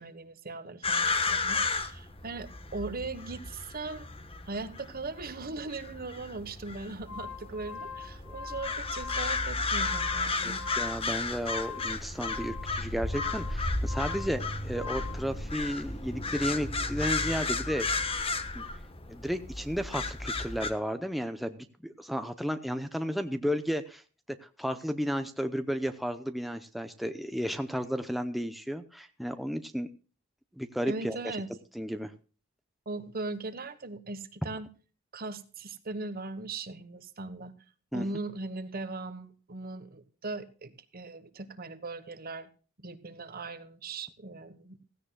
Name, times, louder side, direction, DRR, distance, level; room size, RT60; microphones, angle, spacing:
voice 1, 0.0-4.1 4.5-10.6 30.9-31.5 32.8-34.7 35.1-37.5 37.9-42.5 42.8-44.8, right 3 dB, 45° right, 12 dB, 1.3 m, -39 dB
sound 1, 0.8-20.7, left 3 dB, 30° left, 1.2 m, -33 dB
sound 2, 6.8-15.3, left 6 dB, 75° left, 4.3 m, -43 dB
voice 2, 10.4-17.9 18.5-18.6 19.1-24.0 24.3-29.9 30.6-31.2 31.7-32.1 37.9-38.1, equal, ahead, 7 dB, 0.7 m, -33 dB
16.5 x 16.0 x 2.3 m, 0.37 s
head